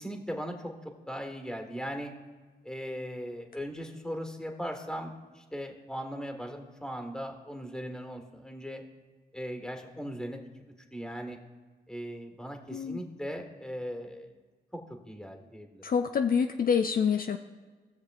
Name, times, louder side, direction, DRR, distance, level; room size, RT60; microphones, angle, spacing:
voice 1, 0.0-2.1 2.6-8.8 9.3-10.5 10.9-11.4 11.9-14.3 14.7-15.8, equal, 5° left, 3 dB, 1.6 m, -38 dB
voice 2, 15.8-17.4, left 6 dB, 50° left, 6 dB, 0.4 m, -26 dB
16.5 x 6.6 x 2.4 m, 1.4 s
cardioid pair, 55°, 19 cm